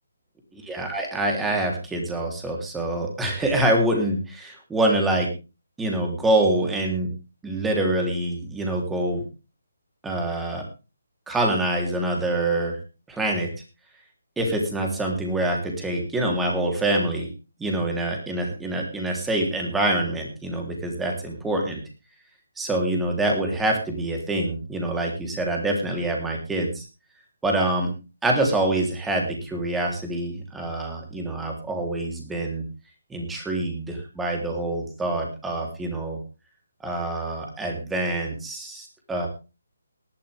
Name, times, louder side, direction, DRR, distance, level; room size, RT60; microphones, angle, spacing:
voice 1, 0.5-5.3 5.8-7.1 7.4-9.2 10.0-10.6 11.3-12.8 13.1-13.5 14.4-17.3 17.6-21.8 22.6-26.8 27.4-27.9 28.2-32.6 33.1-36.2 36.8-39.3, right 1 dB, 5° right, 1 dB, 3.5 m, -25 dB
18.5 x 11.5 x 3.6 m, 0.30 s
figure-of-eight pair, 155°, 0 cm